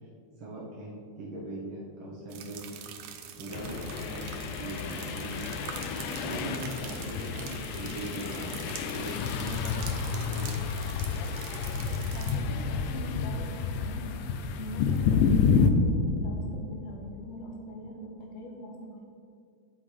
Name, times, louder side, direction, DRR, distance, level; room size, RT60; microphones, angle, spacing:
voice 1, 0.4-2.8 3.4-8.5 8.9-10.5, right 1 dB, 55° right, -6 dB, 1.6 m, -40 dB
sound 1, 2.3-12.4, right 8 dB, 90° right, 2.2 m, -45 dB
sound 2, 3.5-15.7, left 6 dB, 85° left, 2.1 m, -30 dB
voice 2, 12.1-14.3 14.6-19.0, left 1 dB, 60° left, 0 dB, 2.1 m, -41 dB
9.2 x 8.6 x 3.5 m, 2.4 s
omnidirectional pair, 3.5 m